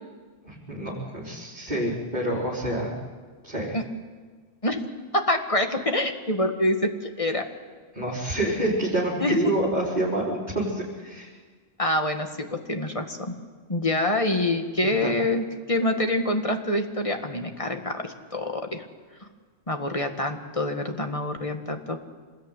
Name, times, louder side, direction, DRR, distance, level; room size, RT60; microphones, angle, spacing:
voice 1, 0.4-2.9 3.4-3.7 7.9-11.3 15.0-15.1, right 1 dB, 35° right, -7 dB, 4.9 m, -27 dB
voice 2, 5.1-7.5 9.2-9.5 11.8-13.3 13.7-18.8 19.7-22.0, left 1 dB, 25° left, 5 dB, 1.9 m, -26 dB
27.0 x 20.5 x 9.3 m, 1.5 s
omnidirectional pair, 1.3 m